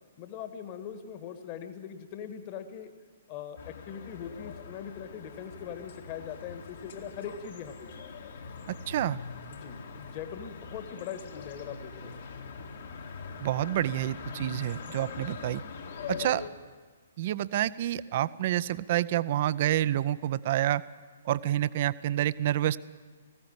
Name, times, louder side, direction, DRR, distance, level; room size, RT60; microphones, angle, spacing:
voice 1, 0.2-2.9 3.3-8.0 9.5-12.3 16.1-16.3, left 8 dB, 35° left, 8 dB, 1.7 m, -41 dB
sound 1, 3.6-16.5, left 5 dB, 55° left, 1.9 m, -43 dB
voice 2, 8.9-9.2 13.4-15.6 16.1-16.4 17.2-20.8 21.2-22.8, right 13 dB, 45° right, 17 dB, 0.6 m, -28 dB
19.5 x 16.0 x 8.9 m, 1.5 s
figure-of-eight pair, 120°, 0 cm